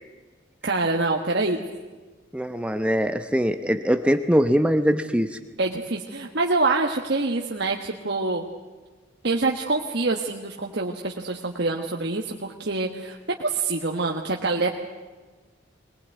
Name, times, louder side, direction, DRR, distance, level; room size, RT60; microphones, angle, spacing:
voice 1, 0.6-1.6 5.6-8.5 9.2-14.7, right 3 dB, 55° right, 2 dB, 1.4 m, -25 dB
voice 2, 2.3-5.4, equal, 5° right, 8 dB, 0.8 m, -22 dB
22.5 x 19.5 x 9.3 m, 1.4 s
head